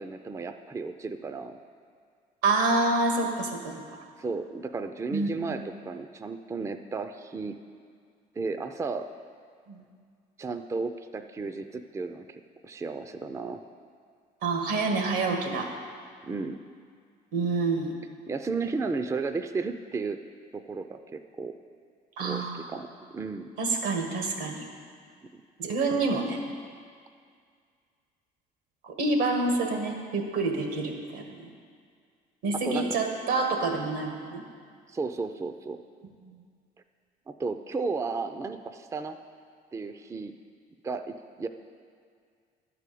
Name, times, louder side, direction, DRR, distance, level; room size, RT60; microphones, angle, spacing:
voice 1, 0.0-1.6 4.2-7.6 8.4-9.1 10.4-13.6 16.2-16.6 18.3-20.2 20.5-21.5 22.2-23.4 32.6-33.0 34.9-35.8 37.4-39.2 39.7-40.3 40.8-41.5, right 4 dB, 15° right, 8 dB, 0.4 m, -34 dB
voice 2, 2.4-3.8 5.1-5.6 9.7-9.8 14.4-15.7 17.3-17.9 22.2-22.7 23.6-24.7 25.6-26.4 28.8-31.5 32.4-34.4, right 3 dB, 90° right, 3 dB, 1.7 m, -27 dB
11.0 x 4.9 x 8.4 m, 2.1 s
cardioid pair, 110°, 17 cm